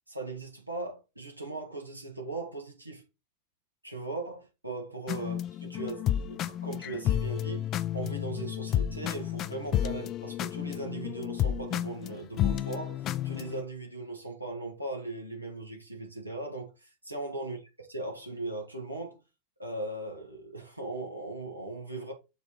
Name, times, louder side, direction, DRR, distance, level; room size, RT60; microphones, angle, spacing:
voice 1, 0.1-3.0 3.8-13.0 13.2-19.2 19.6-22.1, right 2 dB, 85° right, 2.0 m, -39 dB
sound 1, 5.1-13.6, left 11 dB, 35° left, 0.4 m, -31 dB
6.7 x 3.6 x 4.8 m
figure-of-eight pair, 90°, 0 cm